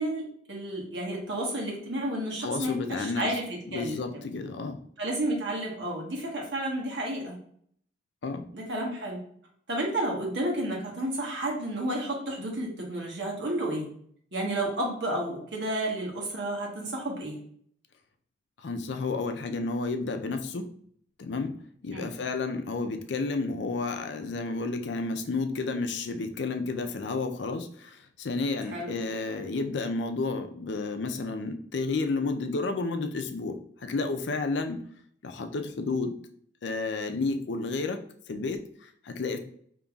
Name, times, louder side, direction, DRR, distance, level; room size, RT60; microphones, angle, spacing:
voice 1, 0.0-4.0 5.0-7.3 8.5-9.2 9.7-13.9 14.3-17.4 21.9-22.1 28.7-28.9, right 1 dB, 85° right, -1 dB, 1.3 m, -31 dB
voice 2, 2.4-3.3 3.7-4.8 8.2-8.5 18.6-20.7 21.2-21.5 21.8-34.8 35.2-36.2 36.6-38.0 38.3-39.4, left 3 dB, 90° left, 6 dB, 0.5 m, -31 dB
5.3 x 2.9 x 2.3 m, 0.62 s
head